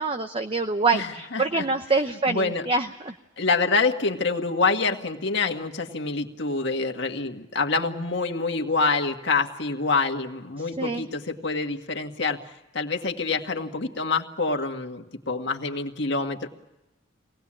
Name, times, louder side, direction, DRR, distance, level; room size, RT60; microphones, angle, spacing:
voice 1, 0.0-3.1 10.8-11.0, right 3 dB, 30° right, 7 dB, 0.8 m, -25 dB
voice 2, 0.9-2.7 3.4-12.4 12.7-16.5, left 4 dB, 60° left, 3 dB, 1.9 m, -26 dB
25.0 x 18.5 x 8.9 m, 1.0 s
head